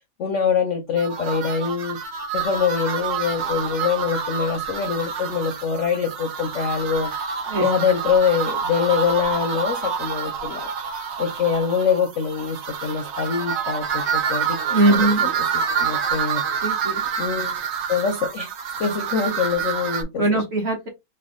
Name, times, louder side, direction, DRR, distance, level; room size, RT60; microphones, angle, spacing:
voice 1, 0.2-2.0 2.3-7.1 7.6-10.7 11.2-14.6 14.9-16.4 17.2-17.6 17.9-20.4, left 6 dB, 65° left, 0.7 m, -24 dB
sound 1, 1.0-20.0, right 6 dB, 75° right, 1.3 m, -27 dB
voice 2, 14.7-15.3 16.6-17.1 20.2-20.9, right 2 dB, 50° right, 0.9 m, -21 dB
3.3 x 2.3 x 3.6 m
omnidirectional pair, 2.0 m